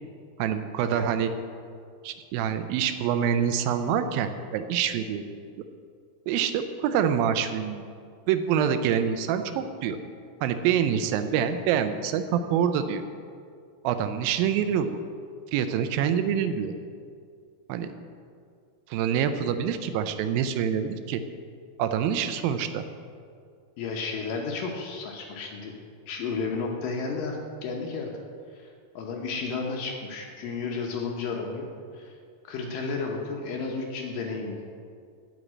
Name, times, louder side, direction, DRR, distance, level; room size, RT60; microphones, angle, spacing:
voice 1, 0.4-1.3 2.0-5.2 6.3-7.8 8.3-10.0 10.4-13.0 13.8-15.0 15.5-16.7 17.7-17.9 18.9-21.2 21.8-22.8, right 8 dB, 80° right, 9 dB, 2.3 m, -26 dB
voice 2, 23.8-25.7 26.1-28.1 28.5-31.7 31.9-32.1 32.4-34.6, left 4 dB, 70° left, 1 dB, 2.4 m, -32 dB
11.0 x 5.4 x 8.6 m, 2.2 s
omnidirectional pair, 4.5 m